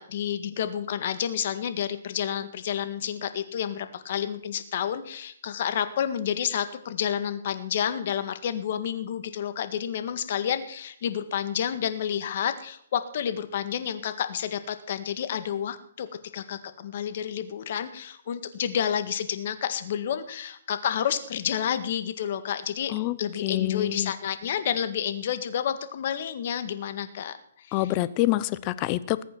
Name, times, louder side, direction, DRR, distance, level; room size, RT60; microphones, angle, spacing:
voice 1, 0.0-16.1 16.3-27.9, left 9 dB, 50° left, 10 dB, 1.8 m, -30 dB
voice 2, 23.4-24.1 27.7-29.2, left 16 dB, 30° left, 17 dB, 0.7 m, -26 dB
20.5 x 8.5 x 6.2 m, 0.64 s
hypercardioid pair, 155°, 0 cm